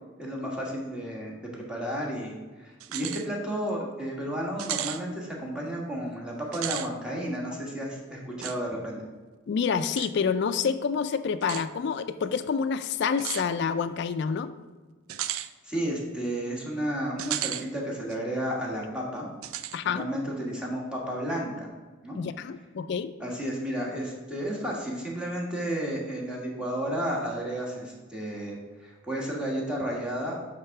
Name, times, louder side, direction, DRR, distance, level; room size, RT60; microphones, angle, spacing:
voice 1, 0.2-9.1 15.6-19.3 19.8-21.7 22.0-22.2 23.2-30.4, right 1 dB, 5° right, -3 dB, 1.4 m, -32 dB
sound 1, 2.8-3.3 3.7-3.8 4.6-5.0 6.4-6.9 8.4-8.6 10.0-10.1 11.4-11.7 13.2-13.5 15.1-15.5 17.2-17.7 18.1-18.2 19.4-19.8, right 12 dB, 85° right, 0.4 m, -33 dB
voice 2, 9.5-14.5 19.7-20.1 22.2-23.1, left 6 dB, 55° left, 10 dB, 0.3 m, -28 dB
7.8 x 3.7 x 5.8 m, 1.3 s
head